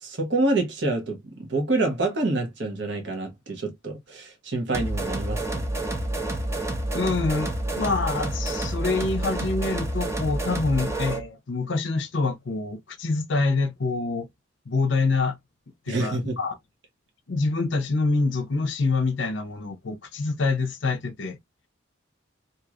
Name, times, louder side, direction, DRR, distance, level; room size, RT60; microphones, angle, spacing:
voice 1, 0.0-5.6 15.9-16.4, right 2 dB, 60° right, 1.0 m, -27 dB
sound 1, 4.7-11.3, right 1 dB, 15° right, 0.7 m, -29 dB
voice 2, 6.9-14.3 14.7-15.4 15.9-16.5 17.3-21.4, left 3 dB, 60° left, 0.6 m, -26 dB
3.0 x 2.7 x 2.4 m
head